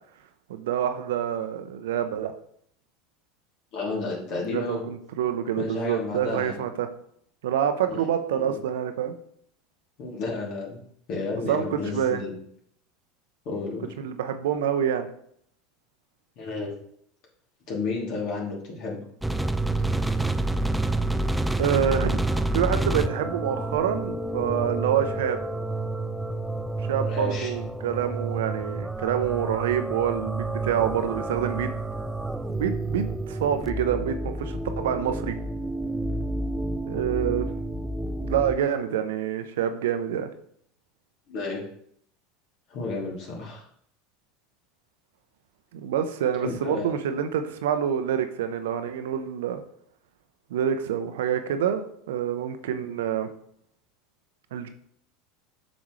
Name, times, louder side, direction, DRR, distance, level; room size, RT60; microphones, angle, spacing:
voice 1, 0.5-2.3 4.5-6.9 7.4-9.2 11.5-12.2 14.0-15.1 21.6-25.4 26.9-31.7 32.5-35.4 36.9-37.5 38.2-40.3 45.7-49.6 50.5-53.3 54.5-54.7, right 9 dB, 75° right, 9 dB, 0.7 m, -27 dB
voice 2, 3.7-4.8 5.6-6.6 7.9-8.0 8.3-8.6 10.0-10.8 11.1-12.3 13.4-13.9 16.4-16.7 17.7-19.0 26.9-27.5 41.3-41.6 42.7-43.6 46.4-46.9, left 3 dB, 55° left, -2 dB, 2.9 m, -32 dB
sound 1, 19.2-38.6, right 2 dB, 5° right, 0.4 m, -29 dB
8.2 x 6.2 x 3.2 m, 0.67 s
hypercardioid pair, 80°, 0 cm